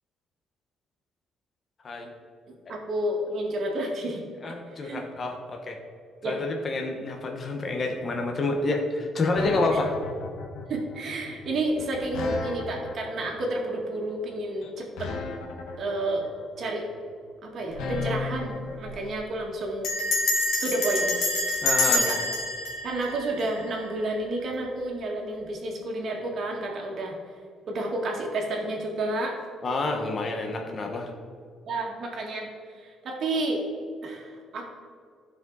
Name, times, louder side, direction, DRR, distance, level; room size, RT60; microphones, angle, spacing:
voice 1, 2.7-5.1 6.2-6.4 9.7-9.8 10.7-15.1 15.8-16.3 16.6-16.9 17.4-19.9 20.6-21.6 21.9-22.2 22.8-27.2 27.7-29.4 30.2-30.7 31.7-33.6 34.0-34.6, right 1 dB, 50° right, 0 dB, 1.8 m, -31 dB
voice 2, 4.4-5.8 6.2-9.9 21.6-22.0 29.6-31.1, left 2 dB, 35° left, 2 dB, 1.2 m, -28 dB
sound 1, 9.3-18.9, left 4 dB, 85° left, 1.3 m, -36 dB
Bell, 17.7-18.1 18.4-18.5 18.7-19.1 19.8-23.9, left 2 dB, 65° left, 1.9 m, -27 dB
15.0 x 5.1 x 4.0 m, 2.1 s
cardioid pair, 140°, 0 cm